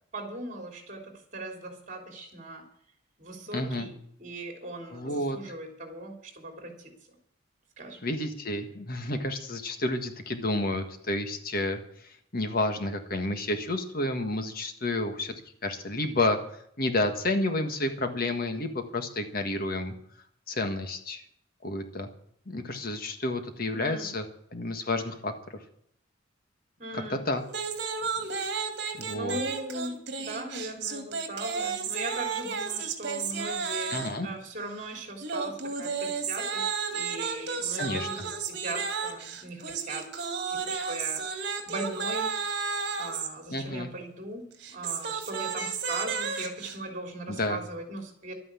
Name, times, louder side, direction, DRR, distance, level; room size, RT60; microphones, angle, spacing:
voice 1, 0.1-2.7 3.2-3.9 4.2-6.9 7.8-8.1 23.7-24.1 26.8-27.2 28.9-40.1 40.5-42.3 43.0-48.3, right 2 dB, 40° right, 3 dB, 3.5 m, -39 dB
voice 2, 3.5-3.9 4.9-5.4 8.0-11.8 12.3-15.3 15.6-16.4 16.8-19.9 20.5-21.2 21.6-22.1 22.5-24.2 24.5-25.3 26.9-27.4 29.0-29.4 33.9-34.3 37.8-38.1 43.5-43.9 47.3-47.6, left 2 dB, 50° left, 7 dB, 1.6 m, -30 dB
sound 1, 27.5-34.2 35.2-43.3 44.5-46.8, right 5 dB, 60° right, 2.2 m, -33 dB
12.5 x 9.6 x 8.4 m, 0.68 s
head